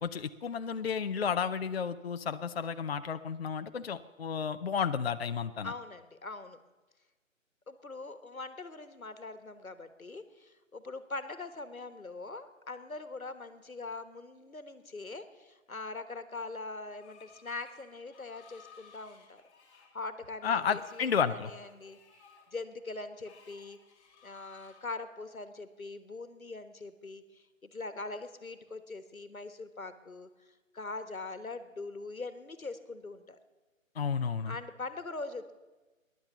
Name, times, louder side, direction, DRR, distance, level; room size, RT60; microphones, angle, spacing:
voice 1, 0.0-5.7 20.4-21.5 34.0-34.6, left 6 dB, 50° left, 10 dB, 0.5 m, -32 dB
voice 2, 5.6-6.6 7.7-19.4 19.9-22.0 22.5-23.8 24.2-30.3 30.7-33.4 34.4-35.5, left 3 dB, 90° left, 12 dB, 1.3 m, -42 dB
Screech, 16.9-24.9, left 6 dB, 20° left, 2.1 m, -59 dB
15.0 x 10.5 x 6.9 m, 1.2 s
figure-of-eight pair, 145°, 41 cm